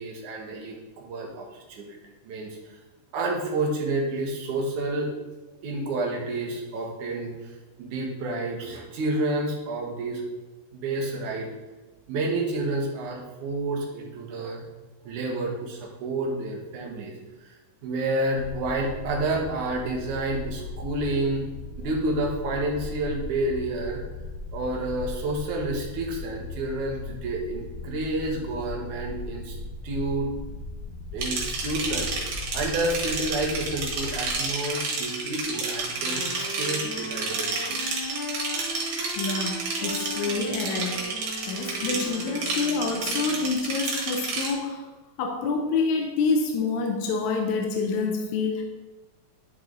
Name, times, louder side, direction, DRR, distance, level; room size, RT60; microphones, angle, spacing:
voice 1, 0.0-2.0 2.2-2.8 3.1-5.1 5.6-7.3 7.8-10.2 10.7-11.5 12.1-14.6 15.0-17.1 17.4-17.6 17.8-21.5 21.7-24.0 24.5-29.5 29.8-30.3 31.1-37.8 41.8-41.9, right 2 dB, 65° right, -1 dB, 2.6 m, -29 dB
sound 1, 18.3-34.3, left 2 dB, 25° left, 2.6 m, -38 dB
sound 2, 31.2-44.5, right 3 dB, 85° right, 3.5 m, -30 dB
Wind instrument woodwind instrument, 35.9-43.6, left 2 dB, 50° left, 2.5 m, -38 dB
voice 2, 39.2-41.1 41.5-44.9 45.2-48.6, left 4 dB, 75° left, 3 dB, 1.7 m, -27 dB
11.0 x 4.6 x 3.9 m, 1.2 s
omnidirectional pair, 4.1 m